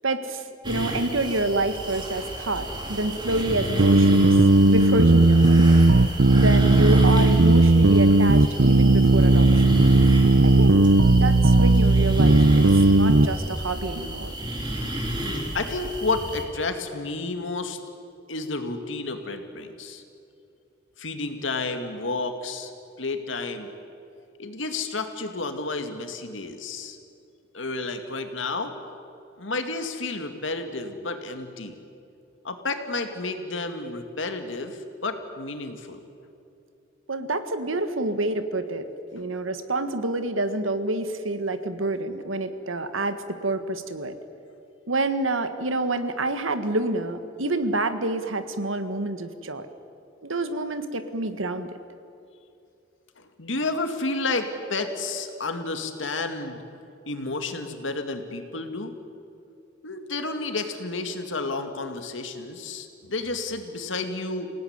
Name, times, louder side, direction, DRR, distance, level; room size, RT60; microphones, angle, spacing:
voice 1, 0.0-4.3 4.6-5.8 6.3-9.8 10.4-14.3 37.1-44.2 44.9-49.7 50.2-51.8, right 2 dB, 85° right, 9 dB, 1.7 m, -28 dB
sound 1, 0.6-16.4, right 1 dB, 25° right, 3.5 m, -32 dB
sound 2, 3.8-13.3, right 2 dB, 65° right, 0.8 m, -16 dB
voice 2, 15.5-17.8 18.3-20.0 21.0-22.7 23.0-23.7 24.4-27.0 27.5-28.7 29.4-31.8 32.4-36.0 53.2-56.6 57.1-59.0 59.8-64.5, left 3 dB, 70° left, 6 dB, 2.3 m, -31 dB
27.5 x 17.5 x 9.7 m, 2.6 s
head